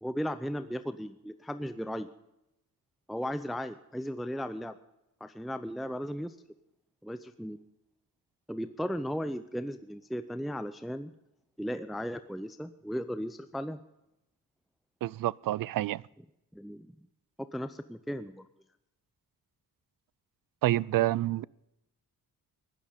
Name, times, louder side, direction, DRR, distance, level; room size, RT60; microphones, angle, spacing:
voice 1, 0.0-2.1 3.1-4.8 5.2-6.4 7.0-7.6 8.5-11.1 11.6-13.8 16.5-17.0 17.4-18.5, equal, ahead, 0.6 m, -36 dB
voice 2, 15.0-16.0 20.6-21.4, right 15 dB, 65° right, 0.5 m, -28 dB
16.0 x 11.0 x 5.2 m
cardioid pair, 100°, 36 cm